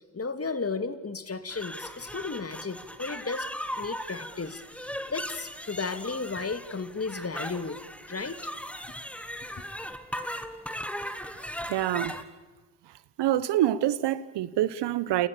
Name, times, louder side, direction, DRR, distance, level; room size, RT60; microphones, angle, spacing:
voice 1, 0.1-3.5 3.8-4.6 5.1-7.8 8.1-8.4, left 4 dB, 35° left, 2.5 m, -34 dB
sound 1, 1.5-12.2, equal, 5° left, 2.4 m, -38 dB
voice 2, 11.7-12.1 13.2-15.3, right 13 dB, 75° right, 1.2 m, -26 dB
29.5 x 29.0 x 7.0 m
hypercardioid pair, 40°, 42 cm